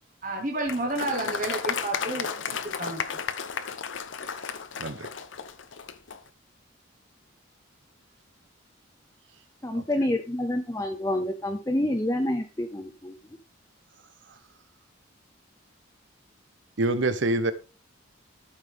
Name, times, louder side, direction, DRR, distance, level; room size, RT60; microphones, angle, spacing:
voice 1, 0.2-3.2, right 2 dB, 40° right, 1.3 m, -31 dB
Applause, 0.7-6.2, left 6 dB, 70° left, 0.7 m, -33 dB
voice 2, 9.6-13.2, left 1 dB, 15° left, 0.6 m, -28 dB
voice 3, 16.8-17.5, right 2 dB, 65° right, 0.8 m, -25 dB
13.0 x 5.6 x 3.5 m
head